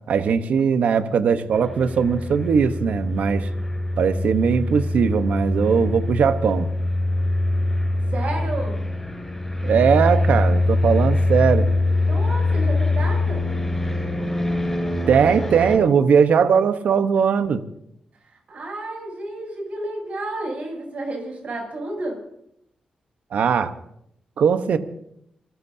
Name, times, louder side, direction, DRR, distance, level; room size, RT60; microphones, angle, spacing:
voice 1, 0.1-3.5 4.0-6.7 9.6-11.7 15.1-17.6 23.3-23.7 24.4-24.8, right 6 dB, 80° right, 9 dB, 1.1 m, -19 dB
sound 1, 1.5-15.8, left 2 dB, 15° left, 7.0 m, -23 dB
voice 2, 8.1-8.8 12.0-13.4 18.5-22.2, right 2 dB, 65° right, 1 dB, 7.8 m, -31 dB
27.5 x 15.5 x 2.8 m, 0.76 s
cardioid pair, 60°, 2 cm